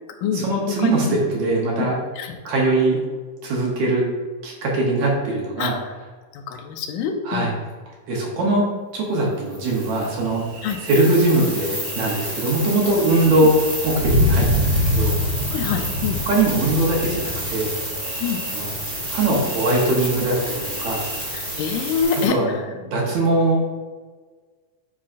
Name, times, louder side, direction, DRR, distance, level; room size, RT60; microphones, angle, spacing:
voice 1, 0.2-2.0 2.5-3.0 3.4-4.0 4.4-5.8 7.2-7.5 8.1-8.7 8.9-10.4 10.8-15.2 16.3-17.7 18.5-18.7 19.1-21.1 22.3-23.6, right 2 dB, 70° right, -2 dB, 2.1 m, -21 dB
voice 2, 0.8-1.2 1.8-1.9 2.2-2.3 5.6-5.8 6.3-7.5 10.6-10.8 13.4-13.5 15.5-16.2 18.2-18.4 21.3-22.6, left 6 dB, 85° left, 4 dB, 2.1 m, -25 dB
sound 1, 9.5-10.1 10.6-22.3, right 1 dB, 15° right, 0.8 m, -30 dB
Thunder, 9.7-22.0, left 1 dB, 85° right, 1.1 m, -27 dB
7.3 x 5.5 x 2.5 m, 1.4 s
omnidirectional pair, 3.7 m